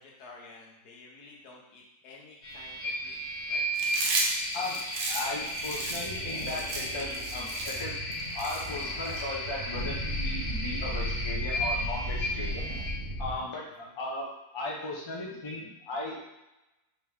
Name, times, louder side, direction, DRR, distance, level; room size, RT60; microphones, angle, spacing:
voice 1, 0.0-3.2 3.5-3.6 13.8-13.9, left 3 dB, 85° left, -2 dB, 1.5 m, -51 dB
sound 1, 2.4-12.9, equal, 70° left, 1.6 m, -35 dB
Chewing mastication, 3.7-9.2, right 3 dB, 70° right, 1.1 m, -34 dB
voice 2, 5.1-8.0 8.3-12.9 13.2-14.3 14.5-16.1, left 2 dB, 30° left, -3 dB, 0.5 m, -37 dB
sound 2, 5.2-13.4, right 1 dB, 45° right, 0.8 m, -36 dB
4.1 x 3.0 x 3.5 m, 0.95 s
omnidirectional pair, 1.6 m